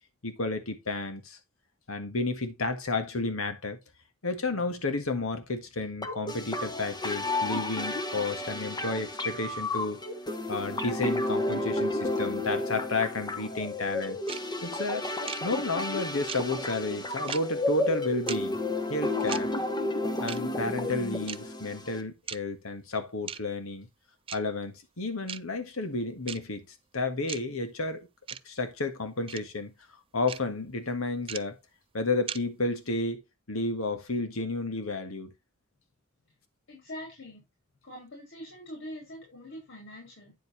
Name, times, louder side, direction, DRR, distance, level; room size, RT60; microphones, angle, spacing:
voice 1, 0.2-1.4 1.9-3.8 4.2-10.0 10.5-15.1 15.4-18.6 18.9-19.5 20.2-23.9 24.3-26.6 26.9-28.1 28.4-29.7 30.1-31.6 31.9-33.2 33.5-35.3, left 3 dB, 80° left, 1.7 m, -32 dB
sound 1, 6.0-22.0, left 2 dB, 20° left, 1.1 m, -32 dB
sound 2, 14.3-14.4 15.3-15.4 16.3-16.4 17.3-17.4 18.3-18.4 19.3-19.4 20.3-20.4 21.3-21.4 22.3-22.4 23.3-23.4 24.3-24.4 25.3-25.4 26.3-26.4 27.3-27.4 28.3-28.4 29.3-29.4 30.3-30.4 31.3-31.4 32.3-32.4, right 8 dB, 25° right, 0.4 m, -36 dB
voice 2, 36.7-37.4 37.8-40.3, equal, 65° left, 4.8 m, -43 dB
9.3 x 7.5 x 3.2 m
head